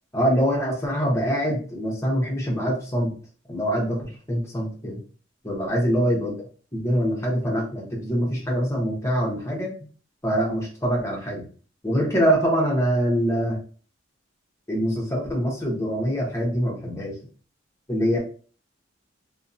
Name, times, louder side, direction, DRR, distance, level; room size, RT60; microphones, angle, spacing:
voice 1, 0.1-3.2 3.5-5.0 5.4-6.3 6.7-9.7 10.2-11.4 11.8-13.6 14.7-17.2 17.9-18.2, equal, 15° left, -2 dB, 0.8 m, -24 dB
2.6 x 2.2 x 2.5 m, 0.39 s
head